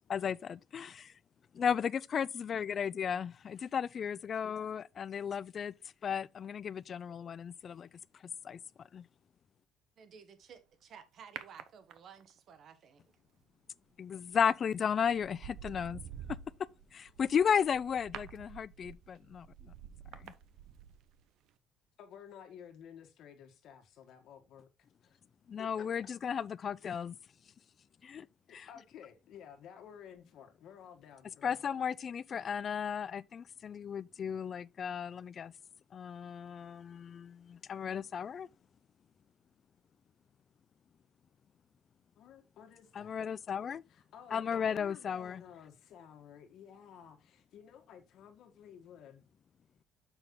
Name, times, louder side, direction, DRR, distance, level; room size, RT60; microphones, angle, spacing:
voice 1, 0.1-1.1 1.6-5.7 6.0-7.9 8.4-9.1 14.0-16.0 16.9-19.7 20.1-20.3 25.5-27.2 28.0-28.3 28.5-28.7 31.4-35.5 35.9-38.5 42.9-43.8 44.3-45.4, left 7 dB, 35° left, 0.3 m, -34 dB
voice 2, 10.0-13.1, right 7 dB, 50° right, 1.3 m, -55 dB
sound 1, 11.4-12.4 14.3-14.5 15.0-21.2 21.5-21.6, right 9 dB, 70° right, 0.7 m, -49 dB
voice 3, 22.0-24.7 25.0-25.2 25.6-25.9 28.5-31.6 42.2-43.1 43.9-49.2, left 8 dB, 60° left, 1.6 m, -53 dB
7.1 x 5.6 x 3.7 m
cardioid pair, 140°, 0 cm